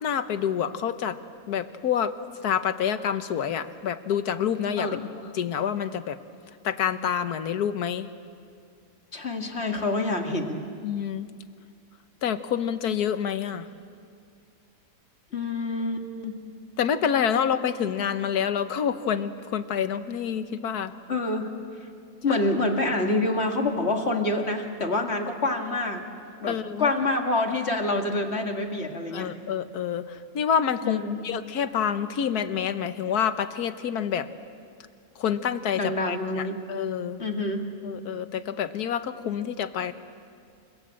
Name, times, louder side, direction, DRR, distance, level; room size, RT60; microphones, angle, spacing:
voice 1, 0.0-1.2 1.5-2.1 2.4-4.9 5.3-6.2 6.6-8.1 10.8-11.3 12.2-13.7 16.8-20.9 22.3-22.4 26.5-26.9 29.1-34.3 35.2-37.2 37.8-39.9, left 8 dB, 75° left, 11 dB, 1.5 m, -27 dB
voice 2, 4.8-5.1 9.1-10.6 15.3-16.3 21.1-21.5 22.2-26.0 26.4-29.3 30.8-31.2 35.8-36.6 37.2-37.7, left 2 dB, 40° left, 3 dB, 2.2 m, -27 dB
28.5 x 25.5 x 7.7 m, 2.3 s
omnidirectional pair, 1.7 m